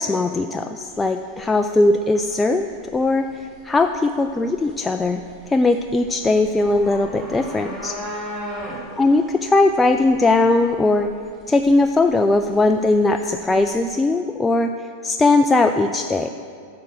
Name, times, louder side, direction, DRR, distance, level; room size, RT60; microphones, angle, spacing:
voice 1, 0.0-8.0 9.0-11.1 11.5-16.3, left 2 dB, 10° left, 6 dB, 0.3 m, -19 dB
sound 1, 0.8-14.0, equal, 25° right, 1.9 m, -38 dB
9.1 x 6.1 x 6.3 m, 2.2 s
figure-of-eight pair, 90°, 0 cm